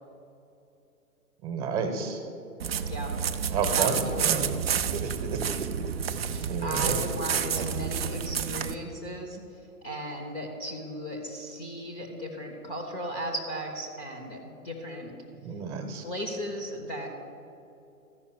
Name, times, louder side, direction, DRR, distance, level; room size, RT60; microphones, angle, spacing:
voice 1, 1.4-2.2 3.5-5.7 6.1-7.0 7.6-7.7 15.4-16.0, right 5 dB, 25° right, 6 dB, 1.1 m, -32 dB
sound 1, 2.6-8.7, right 7 dB, 45° right, 0.5 m, -29 dB
voice 2, 3.7-4.6 6.3-9.4 9.8-15.1 16.0-17.1, equal, 15° left, 1 dB, 0.7 m, -36 dB
13.5 x 5.6 x 6.5 m, 2.7 s
figure-of-eight pair, 120°, 44 cm